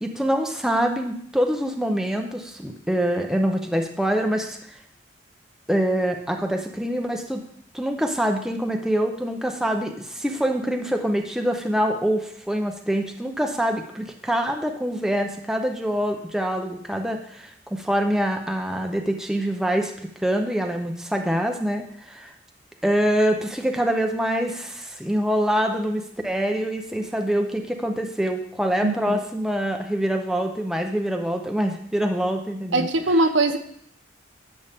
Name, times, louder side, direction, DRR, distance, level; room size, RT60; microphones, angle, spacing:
voice 1, 0.0-4.6 5.7-7.4 7.7-22.3 22.8-32.9, equal, 5° right, 3 dB, 0.7 m, -25 dB
voice 2, 28.8-29.2 32.7-33.6, right 2 dB, 75° right, 7 dB, 0.8 m, -21 dB
11.0 x 7.1 x 3.5 m, 0.68 s
head